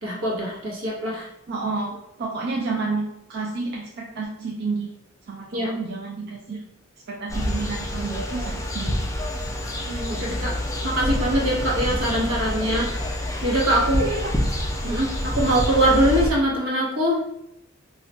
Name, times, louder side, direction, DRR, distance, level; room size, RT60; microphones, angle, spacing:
voice 1, 0.0-1.3 5.5-5.8 9.9-10.6 10.8-12.9 13.4-14.0 14.8-17.2, right 1 dB, 85° right, -3 dB, 1.0 m, -23 dB
voice 2, 1.5-4.9 5.3-6.6 7.1-9.1 14.0-14.3, right 3 dB, 55° right, -2 dB, 0.4 m, -30 dB
sound 1, 7.3-16.3, left 1 dB, 15° left, 0.4 m, -27 dB
2.4 x 2.2 x 3.9 m, 0.78 s
head